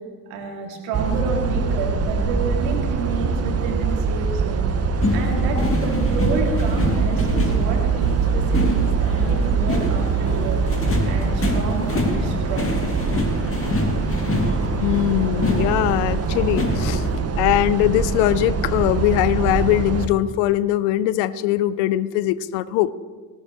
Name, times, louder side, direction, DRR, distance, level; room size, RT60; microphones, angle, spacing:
voice 1, 0.3-4.7 5.1-10.6 11.1-12.8, right 4 dB, 70° right, 1 dB, 2.8 m, -29 dB
sound 1, 0.9-20.1, right 5 dB, 35° right, 1.2 m, -23 dB
sound 2, 5.0-17.2, left 2 dB, 30° left, 2.4 m, -26 dB
voice 2, 14.8-17.0 17.4-22.9, left 14 dB, 65° left, 17 dB, 0.8 m, -21 dB
18.5 x 18.0 x 3.2 m, 1.4 s
figure-of-eight pair, 50°, 44 cm